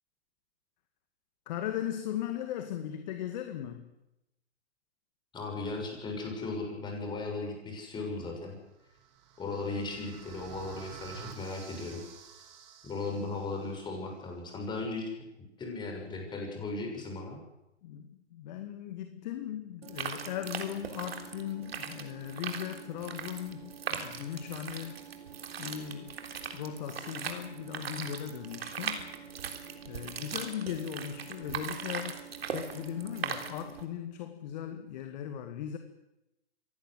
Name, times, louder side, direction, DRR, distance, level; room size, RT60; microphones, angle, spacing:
voice 1, 1.5-3.9 17.8-25.0 25.6-26.1 26.5-29.1 29.9-32.2 32.5-35.8, left 10 dB, 40° left, 7 dB, 2.1 m, -38 dB
voice 2, 5.3-8.6 9.4-12.0 12.8-15.1 15.6-17.4, left 3 dB, 15° left, 2 dB, 6.7 m, -37 dB
sound 1, 8.7-13.8, right 8 dB, 40° right, 4.3 m, -50 dB
sound 2, 19.8-33.8, right 7 dB, 60° right, 3.6 m, -40 dB
24.5 x 18.0 x 7.9 m, 0.90 s
hypercardioid pair, 130°, 34 cm